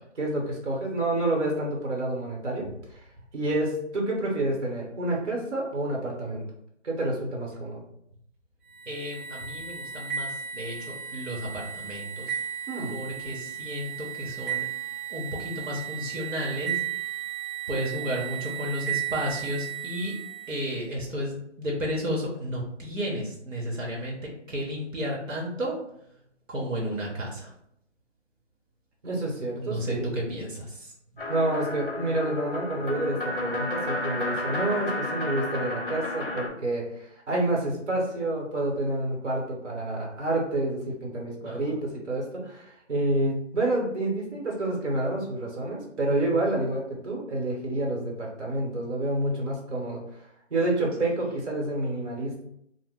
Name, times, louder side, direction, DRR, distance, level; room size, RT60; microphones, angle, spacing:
voice 1, 0.1-2.7 3.3-6.4 6.8-7.8 12.7-12.9 29.0-30.0 31.3-50.0 50.5-52.4, right 2 dB, 65° right, -2 dB, 1.2 m, -28 dB
sound 1, 8.7-20.8, right 10 dB, 45° right, 0.6 m, -35 dB
voice 2, 8.9-12.4 12.9-14.6 15.1-16.7 17.7-20.1 20.5-24.2 24.5-25.7 26.5-27.5 29.6-30.9 41.4-41.8 51.0-51.1, equal, 85° right, -3 dB, 1.1 m, -32 dB
sound 2, 31.2-36.5, left 1 dB, 45° left, 0.5 m, -32 dB
2.9 x 2.1 x 3.5 m, 0.74 s
hypercardioid pair, 175°, 37 cm